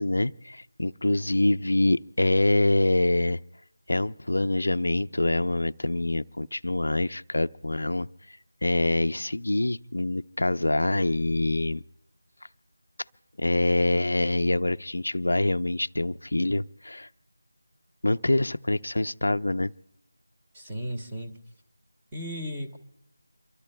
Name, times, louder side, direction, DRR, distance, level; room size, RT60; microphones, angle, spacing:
voice 1, 0.0-3.4 3.9-8.1 8.6-11.8 13.4-17.1 18.0-19.7, left 2 dB, 75° left, 0.5 m, -25 dB
voice 2, 20.5-21.3 22.1-22.8, equal, 10° right, 1.1 m, -35 dB
27.5 x 23.5 x 2.2 m
figure-of-eight pair, 175°, 0 cm